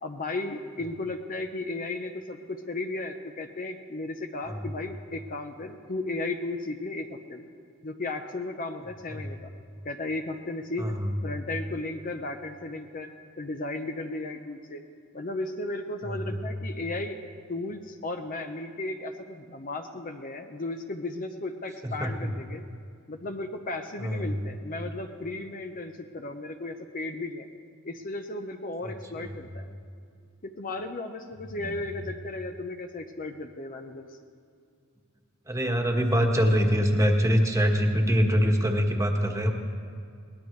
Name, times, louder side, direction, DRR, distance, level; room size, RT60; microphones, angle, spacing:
voice 1, 0.0-7.4 7.8-9.5 9.8-10.9 11.2-13.1 13.4-14.8 15.1-17.2 17.5-22.6 23.1-27.5 27.8-29.7 30.4-34.2, left 2 dB, 40° left, 6 dB, 0.8 m, -35 dB
voice 2, 10.8-11.1 16.0-16.4 21.8-22.3 24.0-24.4 29.2-29.3 31.6-31.8 35.5-39.5, equal, 15° right, 2 dB, 1.4 m, -24 dB
22.0 x 18.5 x 3.3 m, 2.3 s
head